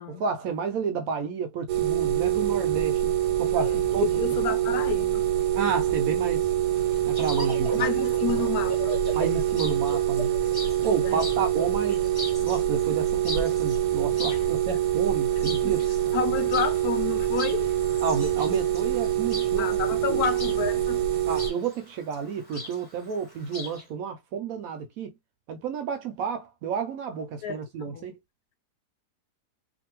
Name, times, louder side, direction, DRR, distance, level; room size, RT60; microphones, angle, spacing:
voice 1, 0.1-4.2 4.5-4.6 5.5-6.5 7.1-7.8 9.1-10.4 10.8-12.0 12.4-15.9 18.0-19.7 20.1-20.2 21.3-25.1 25.5-28.2, right 5 dB, 70° right, 0.9 m, -31 dB
sound 1, 1.7-21.5, right 11 dB, 90° right, 1.3 m, -25 dB
voice 2, 3.6-5.2 7.7-8.9 11.1-11.3 14.3-14.5 15.4-15.8 16.1-17.7 19.6-21.0 27.4-28.1, left 8 dB, 70° left, 1.0 m, -31 dB
Chirp tweet, 6.7-23.8, left 1 dB, 15° left, 0.9 m, -43 dB
sound 2, 7.3-12.6, right 1 dB, 20° right, 0.9 m, -37 dB
2.6 x 2.6 x 2.9 m
omnidirectional pair, 1.7 m